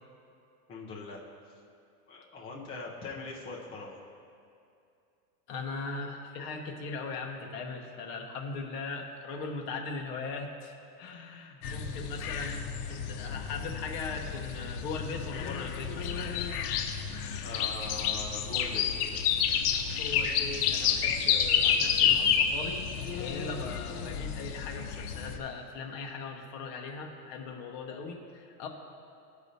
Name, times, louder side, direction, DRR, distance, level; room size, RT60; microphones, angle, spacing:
voice 1, 0.7-1.2 2.1-4.0 17.4-18.9, left 3 dB, 15° left, -4 dB, 0.5 m, -41 dB
voice 2, 5.5-16.3 20.0-22.9 23.2-28.7, left 4 dB, 35° left, 1 dB, 0.9 m, -39 dB
sound 1, 11.6-25.4, left 8 dB, 70° left, 0.8 m, -30 dB
14.0 x 4.8 x 2.7 m, 2.5 s
supercardioid pair, 170°, 47 cm